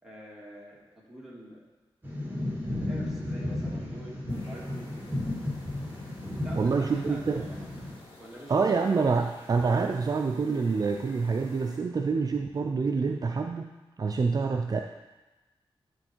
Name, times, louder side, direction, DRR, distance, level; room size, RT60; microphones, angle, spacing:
voice 1, 0.0-1.6 2.7-4.9 6.4-7.7 8.2-8.8, right 1 dB, 5° right, -5 dB, 2.3 m, -46 dB
sound 1, 2.0-7.9, left 1 dB, 20° right, 1.7 m, -34 dB
sound 2, 4.3-11.8, left 2 dB, 90° left, 2.2 m, -52 dB
voice 2, 6.5-7.5 8.5-13.7 14.0-14.8, right 4 dB, 40° right, 4 dB, 0.4 m, -26 dB
11.5 x 4.2 x 4.5 m, 1.2 s
wide cardioid pair, 90°, 10 cm